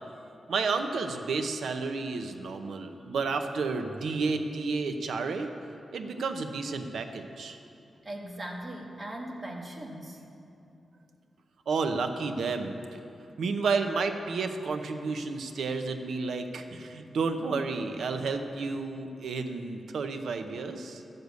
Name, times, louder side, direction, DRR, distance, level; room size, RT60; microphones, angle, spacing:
voice 1, 0.5-5.5 5.9-7.6 11.7-12.7 13.4-21.0, right 4 dB, 80° right, 6 dB, 0.8 m, -31 dB
voice 2, 8.0-10.2, right 1 dB, 25° right, 0 dB, 1.4 m, -39 dB
12.0 x 6.7 x 8.2 m, 2.7 s
wide cardioid pair, 180°, 0 cm